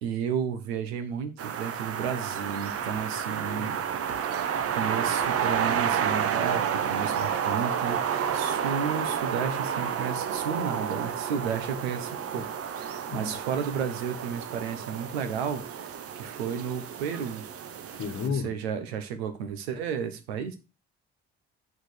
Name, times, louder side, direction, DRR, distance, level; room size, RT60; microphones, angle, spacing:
voice 1, 0.0-3.8 4.8-12.5 12.7-17.4 18.2-20.6, right 7 dB, 75° right, 1.2 m, -33 dB
sound 1, 1.4-18.3, right 8 dB, 45° right, 1.0 m, -30 dB
voice 2, 13.1-13.4 18.0-18.5, left 6 dB, 45° left, 1.3 m, -32 dB
7.3 x 6.5 x 4.8 m
figure-of-eight pair, 45°, 32 cm